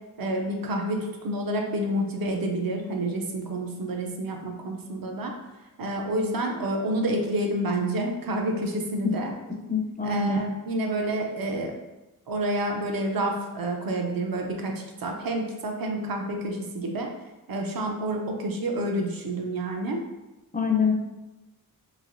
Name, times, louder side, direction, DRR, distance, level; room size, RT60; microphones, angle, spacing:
voice 1, 0.2-5.3 5.8-9.3 10.0-11.7 12.3-17.1 17.5-20.0, right 1 dB, 65° right, 2 dB, 0.5 m, -29 dB
voice 2, 9.7-10.4 20.5-20.9, left 5 dB, 25° left, 1 dB, 0.4 m, -24 dB
3.2 x 2.5 x 2.5 m, 1.0 s
wide cardioid pair, 125°, 38 cm